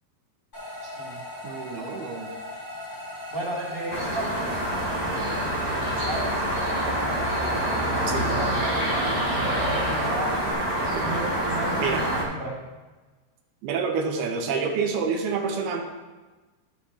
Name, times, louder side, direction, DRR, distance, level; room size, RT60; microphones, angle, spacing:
sound 1, 0.5-10.5, left 1 dB, 15° left, 1.5 m, -38 dB
voice 1, 0.8-1.2 3.3-6.4 7.5-10.4 10.9-12.6, right 1 dB, 45° right, -6 dB, 2.7 m, -35 dB
voice 2, 1.4-2.3 8.1-8.3 11.0-11.1 11.8-12.1 13.6-15.8, right 5 dB, 90° right, 2 dB, 2.8 m, -28 dB
sound 2, 3.9-12.2, right 1 dB, 85° left, 0.3 m, -26 dB
13.0 x 4.9 x 4.1 m, 1.2 s
omnidirectional pair, 4.5 m